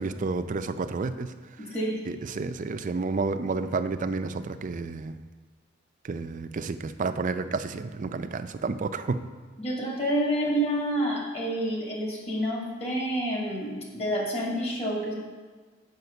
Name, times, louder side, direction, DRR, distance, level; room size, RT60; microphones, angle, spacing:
voice 1, 0.0-1.3 2.1-5.1 6.0-9.2, right 4 dB, 40° right, 10 dB, 0.4 m, -30 dB
voice 2, 1.6-2.0 9.6-15.1, right 1 dB, 35° left, -2 dB, 1.9 m, -28 dB
7.9 x 5.0 x 6.8 m, 1.4 s
head